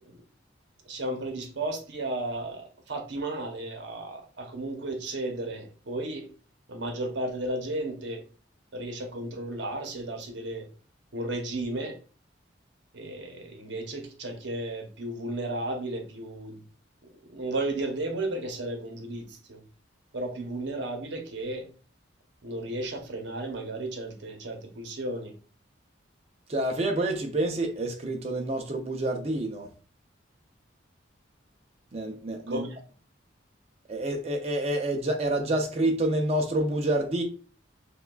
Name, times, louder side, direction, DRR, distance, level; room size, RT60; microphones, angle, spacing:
voice 1, 0.9-6.3 6.7-8.2 8.7-10.7 11.1-12.0 12.9-16.6 17.0-19.6 20.1-21.7 22.4-25.3 32.5-32.7, right 1 dB, 65° right, 0.8 m, -34 dB
voice 2, 26.5-29.7 31.9-32.7 33.9-37.2, right 1 dB, 30° right, 0.5 m, -28 dB
5.5 x 2.3 x 2.3 m
head